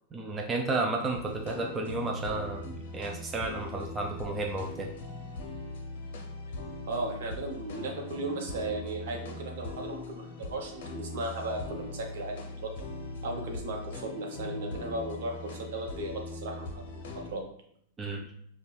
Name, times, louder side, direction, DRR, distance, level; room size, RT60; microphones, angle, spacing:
voice 1, 0.1-4.9 18.0-18.3, right 3 dB, 20° right, 1 dB, 0.4 m, -32 dB
sound 1, 1.1-17.3, left 2 dB, 65° left, 0.6 m, -41 dB
voice 2, 6.9-12.7 13.2-17.4, right 2 dB, 65° right, 1 dB, 0.8 m, -36 dB
5.2 x 2.2 x 2.3 m, 0.69 s
hypercardioid pair, 100°, 0 cm